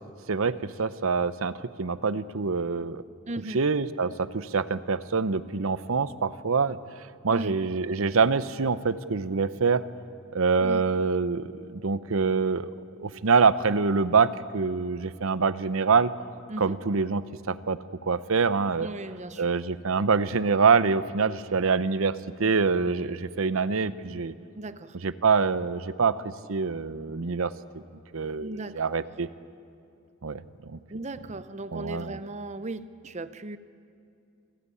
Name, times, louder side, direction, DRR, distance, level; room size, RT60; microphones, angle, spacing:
voice 1, 0.3-1.5 1.8-3.0 3.5-6.8 7.2-9.8 10.3-12.7 13.0-16.1 16.6-18.9 19.4-22.1 22.4-24.3 25.0-27.5 28.1-29.3 30.2-30.8 31.7-32.1, right 5 dB, 65° right, 15 dB, 0.7 m, -25 dB
voice 2, 3.3-3.6 7.3-7.6 10.6-10.9 16.5-16.8 18.8-19.5 24.6-25.0 28.4-28.8 30.9-33.6, right 2 dB, 30° right, 13 dB, 0.7 m, -37 dB
27.0 x 15.5 x 8.5 m, 2.5 s
head